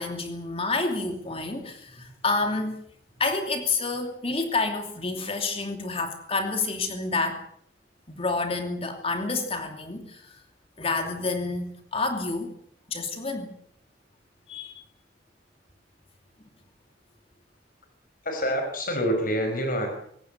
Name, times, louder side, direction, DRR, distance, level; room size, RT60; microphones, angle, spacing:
voice 1, 0.0-2.8 3.2-7.5 8.1-10.3 10.8-12.5 12.9-13.5 14.5-14.8, left 3 dB, 30° left, 5 dB, 2.8 m, -29 dB
voice 2, 18.2-19.9, equal, 50° left, 4 dB, 5.4 m, -26 dB
24.5 x 18.5 x 8.2 m, 0.68 s
head